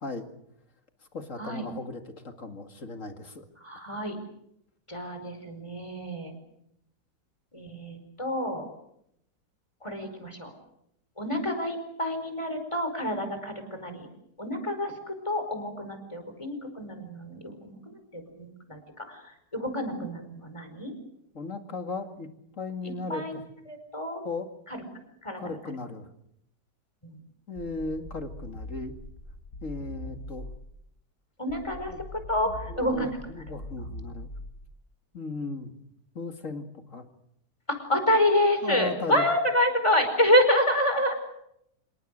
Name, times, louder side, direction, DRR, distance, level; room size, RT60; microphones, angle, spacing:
voice 1, 1.1-3.5 21.3-22.3 22.6-23.4 24.2-24.5 25.4-26.1 27.5-28.9 29.6-30.5 31.9-32.0 32.5-34.3 35.1-35.7 36.1-37.0 38.6-39.2, left 3 dB, 50° left, 6 dB, 2.6 m, -36 dB
voice 2, 3.6-4.2 4.9-6.3 7.5-8.7 9.8-10.5 11.2-14.1 14.4-17.8 18.1-18.8 19.1-20.9 23.1-23.4 23.7-24.2 24.7-24.8 25.2-25.6 27.0-27.2 31.4-31.9 32.3-33.1 37.8-41.2, left 1 dB, 15° left, 7 dB, 5.1 m, -28 dB
sound 1, 27.6-30.8 31.5-34.8, left 1 dB, 75° left, 4.8 m, -42 dB
27.0 x 23.0 x 6.6 m, 0.77 s
omnidirectional pair, 1.8 m